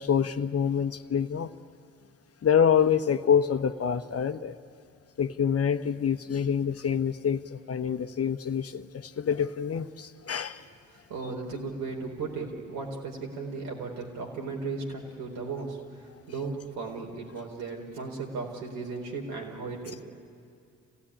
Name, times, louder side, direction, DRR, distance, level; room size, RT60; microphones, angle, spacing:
voice 1, 0.0-1.5 2.4-4.5 5.2-10.6, left 7 dB, 40° left, 10 dB, 1.1 m, -26 dB
voice 2, 11.1-20.0, right 4 dB, 75° right, 0 dB, 4.3 m, -36 dB
27.0 x 16.5 x 10.0 m, 2.4 s
hypercardioid pair, 50°, 37 cm